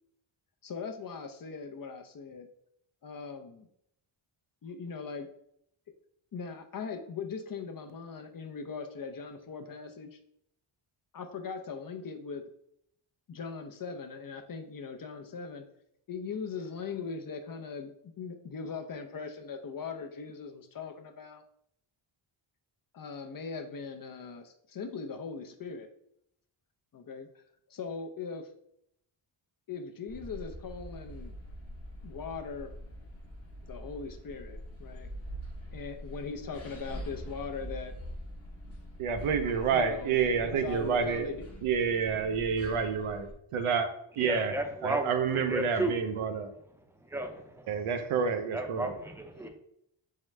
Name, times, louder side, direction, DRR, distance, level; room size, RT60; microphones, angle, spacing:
voice 1, 0.6-2.5 3.0-3.7 4.6-5.3 6.3-10.2 11.1-12.4 13.3-15.6 16.1-21.4 22.9-25.9 26.9-27.3 27.7-28.5 29.7-31.3 32.0-32.7 33.6-35.1 35.7-37.9 39.7-41.4, left 5 dB, 45° left, 0.6 m, -40 dB
sound 1, 30.1-43.3, equal, 30° left, 0.9 m, -44 dB
voice 2, 39.0-41.3 41.6-43.9 44.2-44.6 44.8-46.5 47.7-48.9, right 6 dB, 85° right, 0.7 m, -29 dB
voice 3, 44.2-45.9 47.1-47.7 48.5-49.5, right 1 dB, 5° right, 0.6 m, -34 dB
3.7 x 3.2 x 3.2 m
cardioid pair, 80°, 49 cm